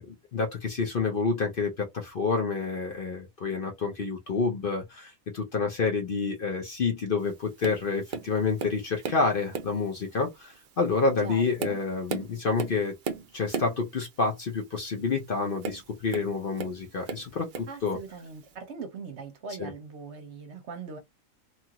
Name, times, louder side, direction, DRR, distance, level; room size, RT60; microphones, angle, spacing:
voice 1, 0.1-12.9 13.3-18.0 19.6-19.7, left 4 dB, 50° left, 0.7 m, -28 dB
Tap, 7.6-7.8 8.1-9.3 9.5-9.9 10.5-10.7 11.2-13.8 15.6-16.8 17.1-17.8 18.5-18.6, right 6 dB, 80° right, 0.4 m, -35 dB
voice 2, 11.2-11.8 17.7-21.0, right 4 dB, 60° right, 0.9 m, -41 dB
2.9 x 2.4 x 2.8 m
omnidirectional pair, 1.5 m